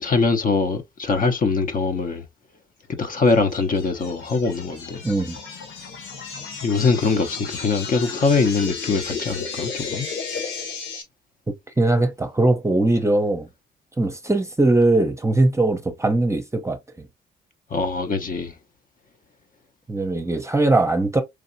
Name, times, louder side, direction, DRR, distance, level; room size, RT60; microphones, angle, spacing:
voice 1, 0.0-2.2 2.9-5.0 6.6-10.1 17.7-18.5, left 4 dB, 45° left, 0.9 m, -22 dB
sound 1, 3.3-11.0, left 5 dB, 75° left, 1.9 m, -33 dB
voice 2, 5.0-5.4 11.8-13.5 14.0-17.1 19.9-21.2, right 2 dB, 15° right, 0.8 m, -20 dB
4.8 x 2.8 x 2.6 m
cardioid pair, 90°, 20 cm